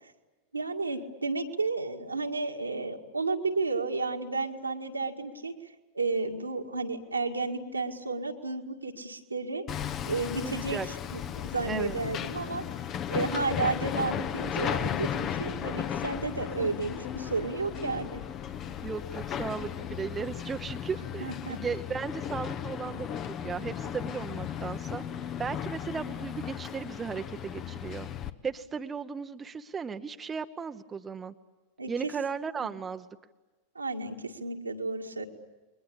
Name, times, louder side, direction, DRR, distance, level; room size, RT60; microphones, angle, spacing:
voice 1, 0.5-5.6 5.9-9.6 10.1-10.8 11.1-12.6 13.1-18.2 21.2-21.6 31.8-31.9 33.8-35.3, right 3 dB, 80° right, 3 dB, 2.1 m, -32 dB
Hammer, 9.7-28.3, left 9 dB, 30° left, 1.1 m, -35 dB
voice 2, 10.4-10.9 11.7-12.0 18.8-28.1 28.4-31.3 31.9-33.1, right 6 dB, 20° right, 8 dB, 1.0 m, -36 dB
sound 1, 11.5-26.1, left 9 dB, 50° left, 1.7 m, -47 dB
29.5 x 23.0 x 8.7 m, 1.2 s
figure-of-eight pair, 90°, 0 cm